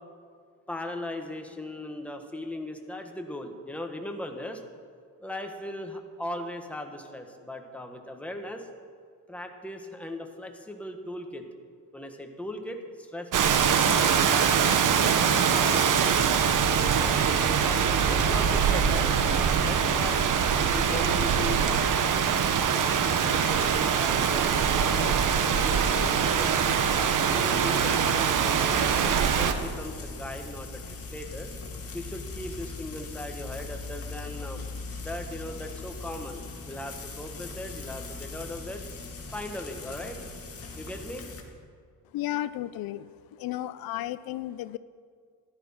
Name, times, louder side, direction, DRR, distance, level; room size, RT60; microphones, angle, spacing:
voice 1, 0.7-4.6 5.2-8.7 9.3-11.5 11.9-14.8 15.5-15.9 16.7-20.2 20.7-22.0 22.7-26.6 27.3-31.5 31.9-34.6 35.0-38.8 39.3-40.2 40.7-41.3, left 1 dB, 5° left, 4 dB, 1.3 m, -38 dB
Rain, 13.3-29.5, right 7 dB, 60° right, 1.1 m, -23 dB
Frying (food), 26.5-41.4, left 3 dB, 40° left, 2.0 m, -40 dB
voice 2, 42.1-43.1 43.4-44.8, left 14 dB, 85° left, 15 dB, 0.5 m, -33 dB
14.0 x 12.0 x 5.7 m, 2.1 s
cardioid pair, 135°, 35 cm